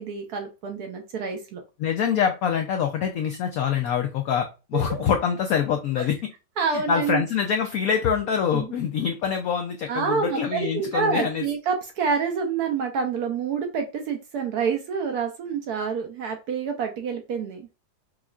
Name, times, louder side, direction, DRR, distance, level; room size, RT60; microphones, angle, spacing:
voice 1, 0.0-1.6 4.7-5.0 6.0-6.1 6.6-7.2 8.5-8.7 9.9-17.6, right 5 dB, 70° right, 4 dB, 0.9 m, -27 dB
voice 2, 1.8-6.2 6.7-11.4, left 7 dB, 90° left, 5 dB, 0.7 m, -25 dB
4.9 x 2.4 x 2.3 m, 0.30 s
omnidirectional pair, 2.1 m